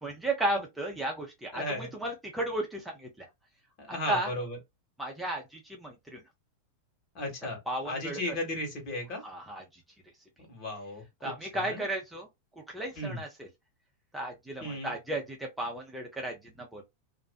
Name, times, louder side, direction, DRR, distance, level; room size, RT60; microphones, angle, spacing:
voice 1, 0.0-3.3 3.9-4.3 5.0-6.2 7.7-8.2 9.2-9.6 11.2-12.3 12.7-13.5 14.1-16.8, right 1 dB, 5° right, 0.7 m, -34 dB
voice 2, 1.5-1.9 3.8-4.6 7.1-7.6 7.8-9.2 10.5-11.8 12.9-13.2 14.6-14.9, left 1 dB, 40° left, 1.4 m, -35 dB
2.5 x 2.3 x 2.3 m
figure-of-eight pair, 90°, 0 cm